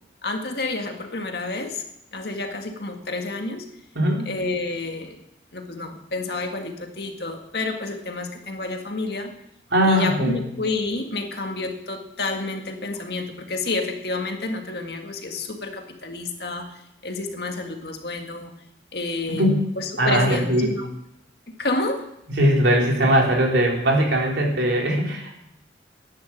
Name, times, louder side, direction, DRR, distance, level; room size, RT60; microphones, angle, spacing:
voice 1, 0.2-1.8 2.1-3.7 4.3-5.2 5.5-9.3 9.9-18.5 18.9-20.9 21.5-22.1, left 2 dB, 60° left, 4 dB, 1.9 m, -29 dB
voice 2, 9.7-10.4 19.4-19.6 20.0-20.7 22.3-25.3, equal, 80° right, -1 dB, 3.8 m, -20 dB
11.0 x 10.5 x 8.6 m, 0.81 s
head